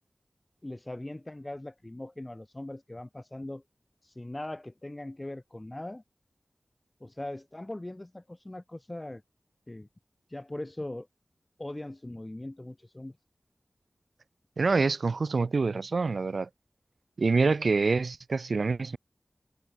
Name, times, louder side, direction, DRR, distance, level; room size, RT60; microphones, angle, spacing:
voice 1, 0.6-3.6 4.0-6.0 7.0-9.2 9.7-9.9 10.3-11.1 11.6-13.2, left 1 dB, 25° left, 3.9 m, -40 dB
voice 2, 14.6-16.5 17.2-19.0, right 4 dB, 85° right, 1.6 m, -26 dB
wide cardioid pair, 65°, 0 cm